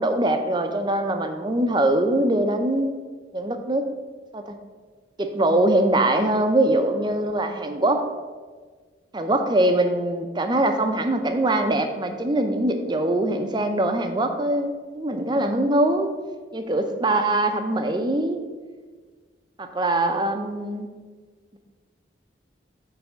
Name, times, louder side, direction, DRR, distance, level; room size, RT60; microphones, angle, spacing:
voice 1, 0.0-2.9 3.3-3.8 4.3-4.4 5.2-8.1 9.1-16.1 16.5-18.4 19.6-20.9, right 1 dB, 25° right, 6 dB, 0.6 m, -22 dB
8.7 x 3.5 x 5.6 m, 1.4 s
head